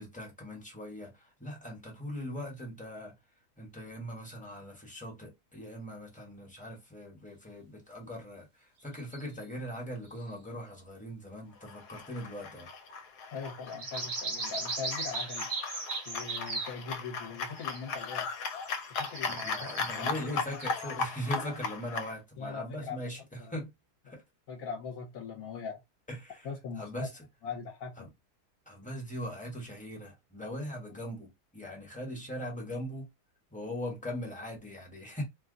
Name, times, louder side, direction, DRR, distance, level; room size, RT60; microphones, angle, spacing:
voice 1, 0.0-3.1 3.6-12.7 19.3-23.7 24.0-24.2 26.1-26.5 26.8-27.2 28.0-28.1 28.7-33.1 33.5-35.2, equal, 5° left, 0.9 m, -40 dB
sound 1, 8.9-9.2 10.2-10.3 13.7-16.7 17.5-18.0 18.3-20.9, right 3 dB, 40° right, 0.7 m, -38 dB
sound 2, 11.6-22.1, left 5 dB, 85° left, 1.1 m, -37 dB
voice 2, 13.3-15.5 16.0-18.3 18.9-20.3 22.4-23.0 23.4-23.5 24.5-25.8 26.4-26.9 27.4-28.1, left 5 dB, 65° left, 1.2 m, -41 dB
2.8 x 2.3 x 3.6 m
omnidirectional pair, 1.7 m